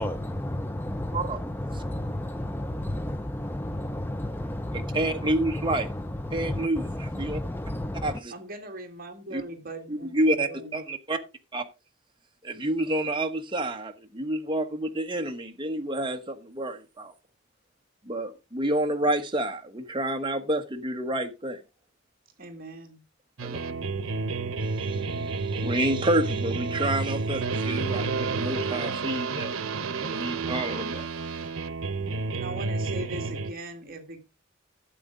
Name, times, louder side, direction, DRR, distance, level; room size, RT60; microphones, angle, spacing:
voice 1, 0.0-8.2, left 1 dB, 10° left, 0.4 m, -32 dB
voice 2, 4.7-5.9 6.3-7.4 8.0-8.3 9.3-9.4 9.9-11.2 11.5-11.6 12.4-17.1 18.0-21.6 23.4-23.6 24.8-29.5 30.0-31.1, right 1 dB, 25° right, 1.2 m, -29 dB
voice 3, 8.3-10.8 22.4-23.0 32.3-34.2, right 1 dB, 45° right, 2.0 m, -40 dB
sound 1, 23.4-33.5, right 4 dB, 90° right, 0.8 m, -30 dB
12.0 x 7.9 x 3.7 m
head